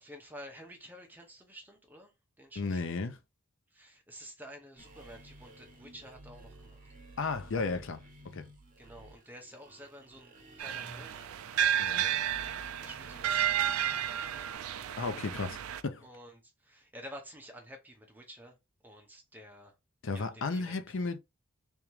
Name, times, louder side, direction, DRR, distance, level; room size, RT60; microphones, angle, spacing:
voice 1, 0.0-3.0 3.7-6.9 8.8-11.2 11.6-14.7 16.0-18.6 18.8-19.8 20.1-21.1, equal, 10° right, 0.9 m, -51 dB
voice 2, 2.6-3.1 7.2-8.0 8.3-8.5 11.8-12.0 15.0-15.6 15.8-16.0 20.0-21.2, left 4 dB, 60° left, 0.5 m, -33 dB
sound 1, 4.8-14.5, right 1 dB, 40° right, 0.8 m, -53 dB
sound 2, 10.6-15.8, right 9 dB, 80° right, 0.4 m, -32 dB
3.5 x 2.9 x 3.1 m
head